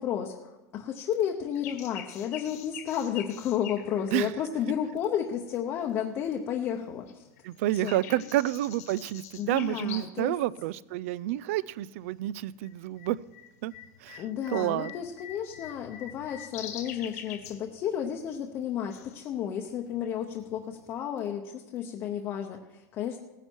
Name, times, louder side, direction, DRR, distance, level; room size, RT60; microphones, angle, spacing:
voice 1, 0.0-7.2 7.8-8.2 9.4-10.3 14.2-23.2, left 9 dB, 30° left, 2 dB, 0.8 m, -32 dB
sound 1, 1.5-5.5 6.0-6.8 7.1-10.3 10.6-10.7 11.4-11.7 12.0-21.0, left 10 dB, 70° left, 1.6 m, -45 dB
voice 2, 7.4-13.2 13.6-13.7 14.0-14.2 14.5-14.9, right 15 dB, 55° right, 20 dB, 0.4 m, -29 dB
17.0 x 10.0 x 4.6 m, 1.1 s
supercardioid pair, 175°, 9 cm